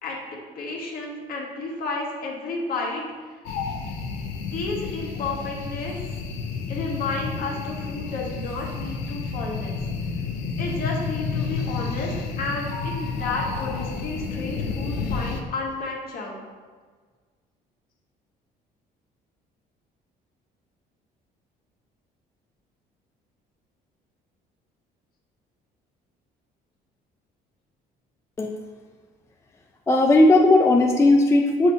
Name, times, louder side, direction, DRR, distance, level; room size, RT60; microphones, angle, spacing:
voice 1, 0.0-3.0 4.4-6.0 6.7-9.8 10.6-16.5, left 3 dB, 60° left, -2 dB, 1.5 m, -32 dB
sound 1, 3.4-15.4, left 5 dB, 85° left, 0.8 m, -30 dB
voice 2, 29.9-31.7, left 2 dB, 15° left, 2 dB, 0.4 m, -16 dB
6.3 x 2.8 x 5.5 m, 1.5 s
cardioid pair, 110°, 17 cm